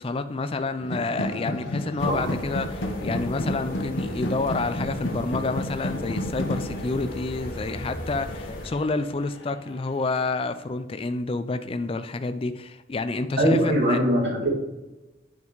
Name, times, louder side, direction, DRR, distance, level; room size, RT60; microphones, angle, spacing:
voice 1, 0.0-14.0, left 3 dB, 30° left, 0.3 m, -29 dB
sound 1, 0.8-9.7, left 1 dB, 80° left, 0.9 m, -32 dB
sound 2, 2.0-8.7, left 1 dB, 50° left, 1.7 m, -37 dB
voice 2, 13.4-14.6, right 1 dB, 70° right, 2.2 m, -22 dB
9.4 x 5.3 x 3.1 m
head